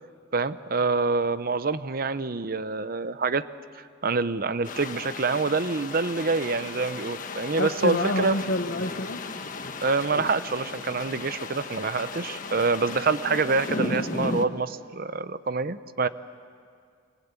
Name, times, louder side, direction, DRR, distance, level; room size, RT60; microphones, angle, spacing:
voice 1, 0.3-3.5 4.0-8.4 9.8-16.1, right 4 dB, 50° right, 14 dB, 0.8 m, -26 dB
sound 1, 4.6-14.5, left 3 dB, 45° left, 1.4 m, -35 dB
voice 2, 7.6-9.2, left 1 dB, 70° left, 3 dB, 1.1 m, -27 dB
26.5 x 26.0 x 8.3 m, 2.2 s
head